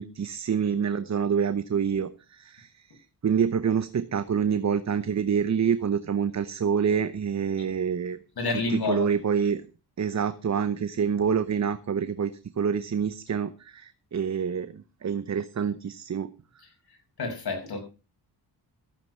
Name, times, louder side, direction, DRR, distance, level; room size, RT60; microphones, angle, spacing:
voice 1, 0.0-2.9 3.2-8.2 8.7-9.6 10.0-12.3 12.6-16.3, right 7 dB, 40° right, 12 dB, 0.9 m, -27 dB
voice 2, 8.4-9.1 17.2-17.8, left 3 dB, 65° left, 3 dB, 5.9 m, -29 dB
14.5 x 8.9 x 5.5 m, 0.33 s
cardioid pair, 85°, 41 cm